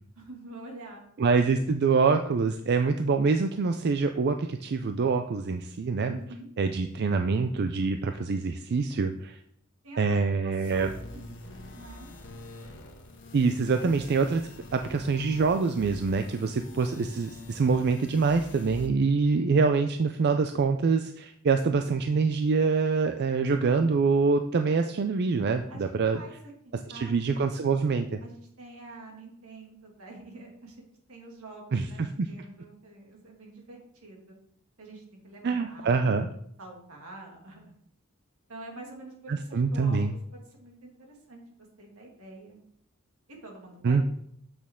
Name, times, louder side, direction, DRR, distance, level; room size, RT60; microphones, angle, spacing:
voice 1, 0.1-1.0 6.1-6.5 9.8-10.0 10.4-11.2 11.7-12.1 25.7-26.3 26.6-27.2 28.2-34.4 34.8-35.9 36.6-37.7 38.5-41.4 41.8-42.6 43.3-44.0, right 2 dB, 75° right, 0 dB, 2.3 m, -47 dB
voice 2, 1.2-6.2 6.6-9.4 10.0-10.9 13.3-14.4 14.7-26.2 26.9-28.2 31.7-32.1 35.4-36.3 39.3-40.1 43.8-44.0, right 4 dB, 50° right, 7 dB, 0.4 m, -25 dB
sound 1, 10.6-18.9, left 1 dB, 60° left, 1.2 m, -45 dB
8.3 x 6.2 x 3.7 m, 0.69 s
head